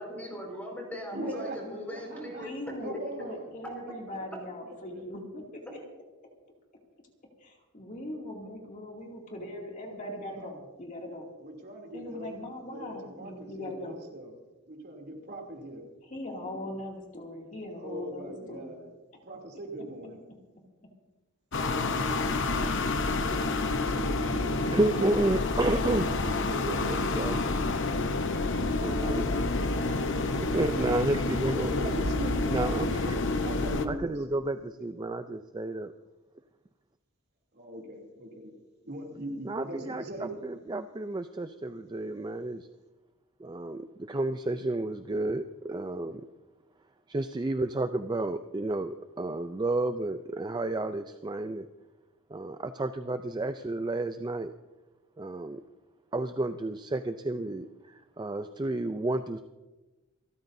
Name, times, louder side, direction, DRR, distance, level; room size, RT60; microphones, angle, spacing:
voice 1, 0.0-2.5, equal, 10° left, -1 dB, 5.2 m, -39 dB
voice 2, 1.1-1.6 1.9-2.5 2.8-3.5 4.9-5.0 10.4-10.5 11.4-12.4 12.7-14.3 14.7-15.8 17.8-18.9 19.2-20.2 22.5-22.9 23.3-24.6 31.6-32.5 33.4-34.2 37.5-38.5 38.8-40.3, right 1 dB, 50° right, 0 dB, 2.9 m, -40 dB
voice 3, 2.4-5.4 7.4-11.3 11.9-13.9 16.0-18.7 19.1-19.2, left 1 dB, 40° left, 0 dB, 2.6 m, -40 dB
sound 1, 21.5-33.9, left 3 dB, 60° left, 0.9 m, -28 dB
voice 4, 24.7-27.4 28.8-29.4 30.5-31.9 32.5-33.3 33.9-35.9 39.4-42.7 43.4-46.3 47.1-51.7 52.3-54.5 55.2-55.6 56.1-59.4, right 2 dB, 20° right, 9 dB, 0.4 m, -31 dB
28.5 x 13.0 x 2.7 m, 1.1 s
head